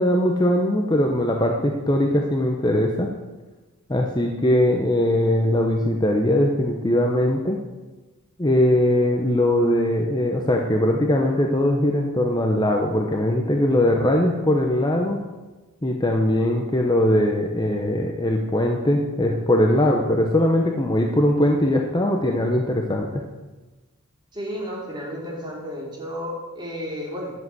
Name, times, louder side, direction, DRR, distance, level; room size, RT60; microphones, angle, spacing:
voice 1, 0.0-3.1 3.9-7.6 8.4-15.2 15.8-23.1, left 1 dB, 20° left, 2 dB, 0.9 m, -20 dB
voice 2, 24.3-27.3, equal, 20° right, -3 dB, 3.4 m, -32 dB
11.5 x 7.5 x 7.8 m, 1.2 s
head